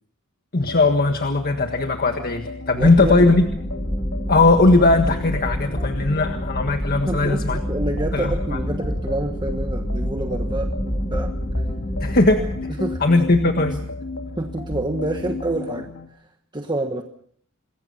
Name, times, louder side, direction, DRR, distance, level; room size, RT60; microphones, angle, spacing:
voice 1, 0.5-3.5 4.3-7.6 8.1-8.3 12.0-12.5 13.0-13.8, left 2 dB, 45° left, 6 dB, 1.6 m, -18 dB
sound 1, 0.6-16.1, left 2 dB, 80° left, 2.7 m, -35 dB
sound 2, 2.8-12.6, equal, 10° left, 2.5 m, -27 dB
voice 2, 2.8-3.3 7.1-10.7 11.1-11.3 12.8-13.0 13.4-13.8 14.4-15.9 16.5-17.0, right 2 dB, 20° right, 4 dB, 1.3 m, -27 dB
27.0 x 21.5 x 5.6 m, 0.63 s
head